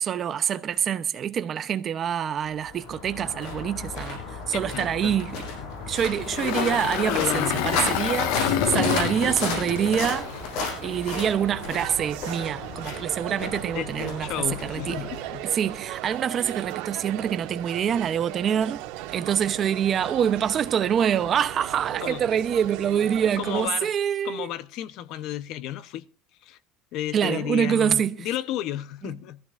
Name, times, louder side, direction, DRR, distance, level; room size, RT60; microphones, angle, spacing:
voice 1, 0.0-4.2 4.5-5.4 5.9-10.3 10.8-15.0 15.5-18.8 19.1-24.5 27.1-28.3, right 8 dB, 30° right, 0.8 m, -26 dB
sound 1, 2.5-15.8, left 3 dB, 70° left, 6.6 m, -34 dB
voice 2, 4.5-5.2 6.7-7.7 13.7-15.5 22.0-22.2 23.4-23.9 24.2-26.1 26.4-26.6 26.9-29.4, left 12 dB, 50° left, 0.9 m, -32 dB
Engine, 6.1-11.3, left 9 dB, 90° left, 1.6 m, -28 dB
sound 2, 7.1-23.7, right 15 dB, 90° right, 2.1 m, -38 dB
22.5 x 15.0 x 2.6 m
cardioid pair, 175°, 0 cm